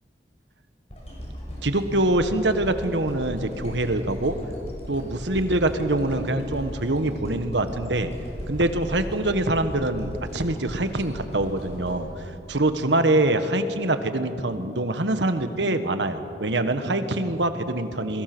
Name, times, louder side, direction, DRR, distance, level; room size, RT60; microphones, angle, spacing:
sound 1, 0.9-13.1 13.7-13.8, equal, 35° left, 6.0 m, -37 dB
voice 1, 1.6-4.3 4.9-8.1 8.5-12.1 12.5-18.2, right 2 dB, 90° right, 9 dB, 1.5 m, -24 dB
28.0 x 22.0 x 6.2 m, 2.8 s
head